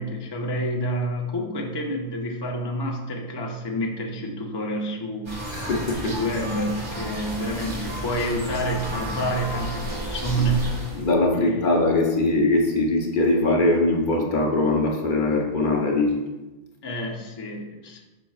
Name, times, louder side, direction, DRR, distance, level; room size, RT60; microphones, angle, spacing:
voice 1, 0.0-5.4 6.0-10.8 11.3-11.8 16.8-18.0, right 1 dB, 30° left, 0 dB, 0.7 m, -28 dB
sound 1, 5.3-11.1, right 1 dB, 55° right, 1.8 m, -32 dB
voice 2, 5.5-6.1 11.0-16.2, left 2 dB, 55° left, 0 dB, 1.0 m, -21 dB
7.5 x 5.8 x 2.4 m, 1.1 s
omnidirectional pair, 1.1 m